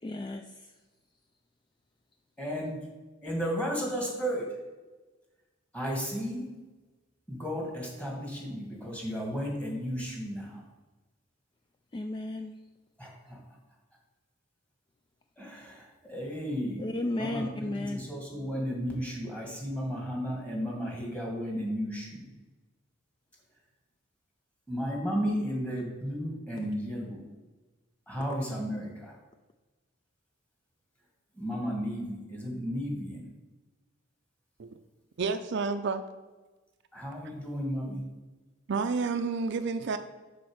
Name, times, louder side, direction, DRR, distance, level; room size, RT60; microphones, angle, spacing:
voice 1, 0.0-0.7 11.9-12.5 16.8-18.0 28.2-28.3, left 2 dB, 25° left, 0.3 m, -34 dB
voice 2, 2.4-2.8 3.2-4.5 5.7-6.5 7.3-10.6 13.0-13.4 15.4-22.3 24.7-27.2 28.1-29.1 31.3-33.3 36.9-38.0, equal, 5° left, 2.0 m, -34 dB
voice 3, 35.2-36.0 38.7-40.0, right 4 dB, 65° right, 0.5 m, -30 dB
7.1 x 4.2 x 6.3 m
head